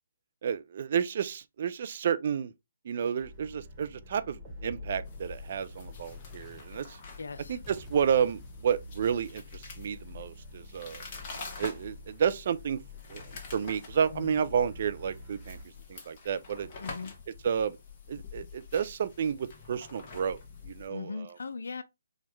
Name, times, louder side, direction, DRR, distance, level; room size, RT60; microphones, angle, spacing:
voice 1, 0.4-2.5 2.8-7.0 7.5-11.0 11.6-12.8 13.1-15.6 15.9-16.7 17.4-17.8 18.1-21.4, right 7 dB, 45° right, 0.4 m, -31 dB
sound 1, 3.2-15.6, left 2 dB, 20° right, 1.2 m, -48 dB
Explosion, 3.3-6.6 7.6-9.7, left 7 dB, 20° left, 0.6 m, -56 dB
sound 2, 5.0-20.9, left 4 dB, 35° left, 1.0 m, -47 dB
voice 2, 7.2-7.6 14.1-14.4 16.8-17.1 20.9-21.8, left 4 dB, 65° left, 0.5 m, -39 dB
4.2 x 2.3 x 3.1 m
figure-of-eight pair, 140°, 0 cm